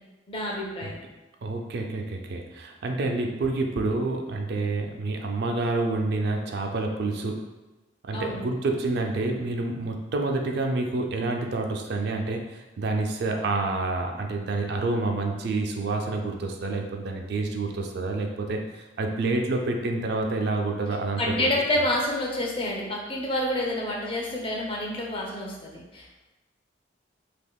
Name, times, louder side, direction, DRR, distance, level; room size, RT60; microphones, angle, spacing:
voice 1, 0.3-1.0 8.1-8.5 21.2-26.2, left 1 dB, 30° left, -2 dB, 0.5 m, -28 dB
voice 2, 1.4-7.4 8.0-21.5, right 2 dB, 60° right, 3 dB, 0.3 m, -28 dB
3.5 x 2.8 x 2.2 m, 1.1 s
head